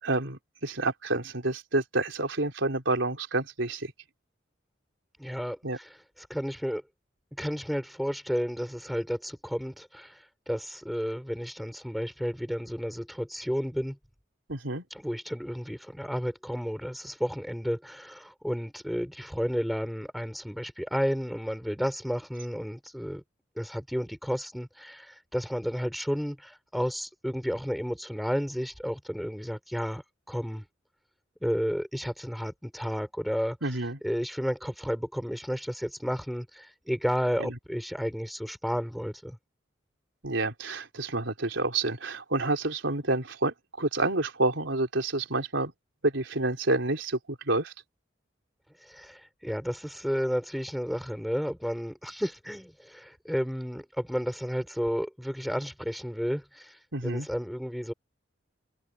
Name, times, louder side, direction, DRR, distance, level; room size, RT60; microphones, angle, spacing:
voice 1, 0.0-3.9 5.6-5.8 14.5-14.9 33.6-34.0 37.4-37.5 40.2-45.7 46.0-47.7 56.9-57.3, right 2 dB, 75° right, 3.9 m, -29 dB
voice 2, 5.2-6.8 7.3-14.0 14.9-23.2 23.6-30.6 31.4-39.4 48.8-57.9, equal, ahead, 4.8 m, -32 dB
head